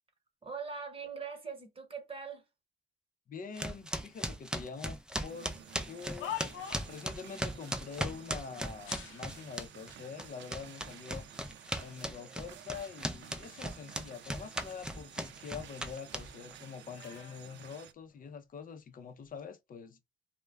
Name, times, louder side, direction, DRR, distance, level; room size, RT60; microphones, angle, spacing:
voice 1, 0.4-2.5, right 5 dB, 30° right, 1.1 m, -42 dB
voice 2, 3.3-5.5 5.9-6.4 6.9-11.3 11.8-20.0, left 6 dB, 45° left, 0.6 m, -45 dB
sound 1, 3.6-9.9 10.2-16.5, right 1 dB, 5° right, 0.4 m, -37 dB
sound 2, 5.3-17.9, right 10 dB, 65° right, 0.5 m, -53 dB
sound 3, 5.8-7.1 8.8-9.7 10.5-10.6 11.3-12.0 12.5-13.9 14.3-16.0 16.2-18.4 19.1-19.4, left 11 dB, 85° left, 0.6 m, -47 dB
2.3 x 2.1 x 3.1 m
cardioid pair, 90°, 20 cm